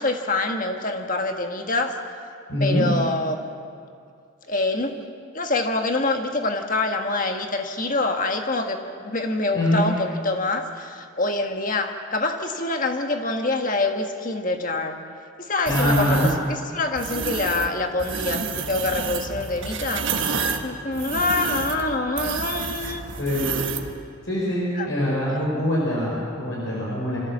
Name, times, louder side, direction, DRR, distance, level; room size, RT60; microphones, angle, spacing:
voice 1, 0.0-1.9 2.6-3.4 4.5-5.1 5.3-15.0 15.4-20.1 20.6-23.0 24.7-24.9 25.3-25.4, left 2 dB, 40° left, 4 dB, 1.6 m, -25 dB
voice 2, 2.5-2.9 9.5-9.8 15.7-16.3 23.2-23.5 24.2-27.2, left 1 dB, 70° left, -6 dB, 5.0 m, -23 dB
sound 1, 15.7-16.4 17.0-17.7 18.0-23.9, right 5 dB, 65° right, 1.4 m, -29 dB
26.0 x 15.0 x 7.4 m, 2.4 s
head